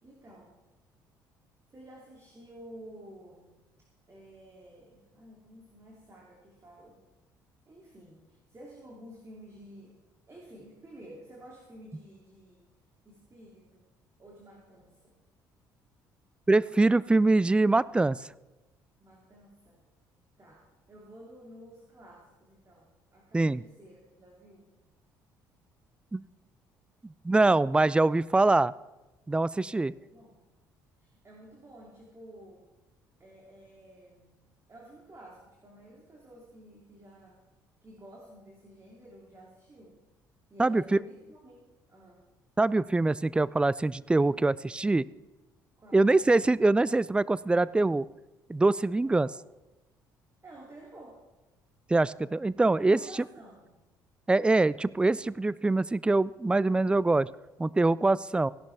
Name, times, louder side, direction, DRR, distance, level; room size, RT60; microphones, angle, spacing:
voice 1, 0.0-0.6 1.7-3.5 4.1-7.0 7.7-10.0 10.3-12.7 13.0-13.9 14.2-15.2 19.0-19.8 20.4-24.7 29.7-30.5 31.0-32.7 33.2-34.4 34.7-37.4 37.8-40.0 40.5-42.3 45.8-46.2 49.0-49.3 50.4-51.2 52.6-53.8, right 1 dB, 30° right, -2 dB, 2.8 m, -52 dB
voice 2, 16.5-18.2 23.3-23.6 26.1-26.2 27.2-28.7 29.3-29.9 40.6-41.0 42.6-45.1 45.9-48.1 48.5-49.3 51.9-53.0 54.3-57.3 57.6-58.5, right 2 dB, 10° right, 20 dB, 0.3 m, -24 dB
16.0 x 11.5 x 3.5 m, 1.0 s
figure-of-eight pair, 50°, 10 cm